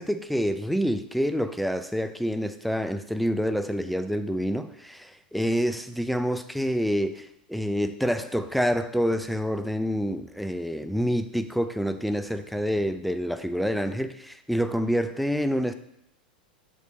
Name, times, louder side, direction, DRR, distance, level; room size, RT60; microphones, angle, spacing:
voice 1, 0.0-15.7, equal, ahead, 10 dB, 0.4 m, -27 dB
6.5 x 3.4 x 5.1 m, 0.76 s
hypercardioid pair, 95°, 5 cm